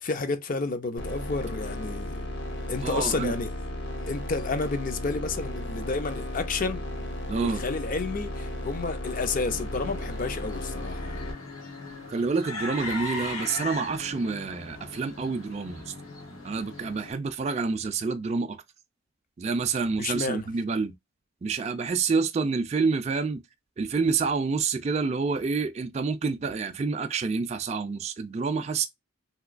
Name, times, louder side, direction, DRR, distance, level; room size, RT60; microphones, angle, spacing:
voice 1, 0.0-2.3 2.7-3.5 4.1-7.1 7.4-11.2 20.0-20.5, left 3 dB, 40° left, 0.4 m, -31 dB
sound 1, 1.0-11.3, left 1 dB, 55° left, 0.9 m, -35 dB
voice 2, 2.8-3.3 7.3-7.6 12.1-15.9 16.4-18.6 19.4-20.9 21.4-23.4 23.8-28.9, right 4 dB, 30° right, 0.3 m, -28 dB
sound 2, 9.5-17.1, left 2 dB, 85° left, 1.1 m, -39 dB
3.1 x 2.9 x 2.4 m
head